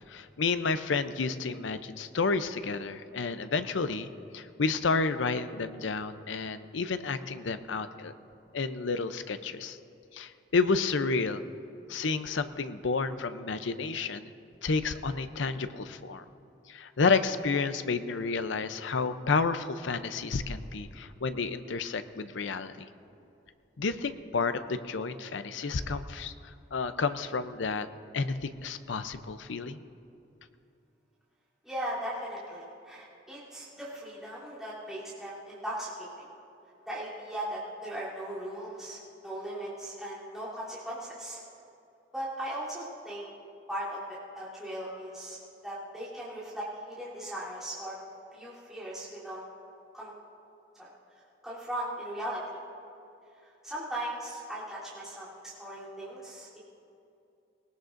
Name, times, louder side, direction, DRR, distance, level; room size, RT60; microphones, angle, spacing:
voice 1, 0.1-4.1 4.3-8.1 8.5-9.8 10.1-11.4 11.9-14.3 14.6-16.2 16.7-22.9 23.8-27.9 28.1-29.8, left 4 dB, 85° left, 11 dB, 0.6 m, -30 dB
voice 2, 31.6-36.3 36.9-41.4 42.1-43.3 43.7-45.4 45.6-48.0 48.3-49.4 49.9-50.1 50.7-50.9 51.4-52.6 53.4-56.6, right 1 dB, ahead, -11 dB, 3.2 m, -38 dB
20.0 x 19.0 x 2.6 m, 2.7 s
head